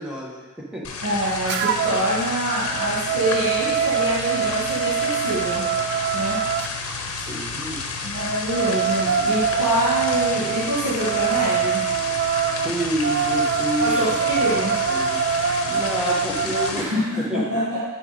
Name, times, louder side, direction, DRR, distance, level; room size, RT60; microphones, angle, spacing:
voice 1, 0.0-0.9 7.2-7.8 12.5-14.1 14.8-15.2 15.7-17.4, equal, 5° right, -4 dB, 1.2 m, -29 dB
sound 1, 0.8-16.8, left 4 dB, 75° left, 0.8 m, -31 dB
voice 2, 1.0-5.6 6.1-6.4 8.0-11.8 13.8-14.8 16.7-17.8, equal, 70° right, -12 dB, 1.9 m, -25 dB
sound 2, 1.5-2.1 2.5-6.7 8.2-16.8, right 7 dB, 50° right, 0.3 m, -24 dB
6.5 x 5.0 x 4.1 m, 1.2 s
head